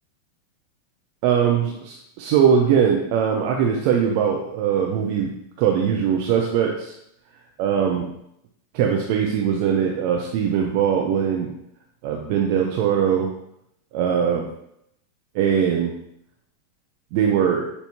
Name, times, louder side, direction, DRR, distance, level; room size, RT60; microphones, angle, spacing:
voice 1, 1.2-6.9 7.6-8.1 8.7-11.5 12.0-13.3 13.9-14.5 15.3-15.9 17.1-17.7, right 8 dB, 45° right, 1 dB, 0.5 m, -21 dB
6.2 x 2.7 x 2.8 m, 0.77 s
figure-of-eight pair, 90°, 0 cm